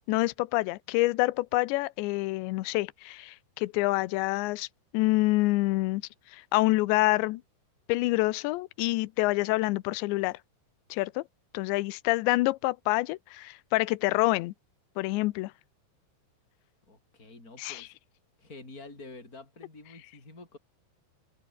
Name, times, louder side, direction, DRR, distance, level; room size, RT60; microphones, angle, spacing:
voice 1, 0.1-4.7 4.9-6.0 6.5-7.4 7.9-10.4 10.9-11.2 11.5-14.5 15.0-15.5 17.6-17.8, left 20 dB, 80° left, 3.0 m, -27 dB
voice 2, 16.9-18.0 18.4-20.6, left 2 dB, 20° left, 7.6 m, -48 dB
open air
omnidirectional pair, 5.2 m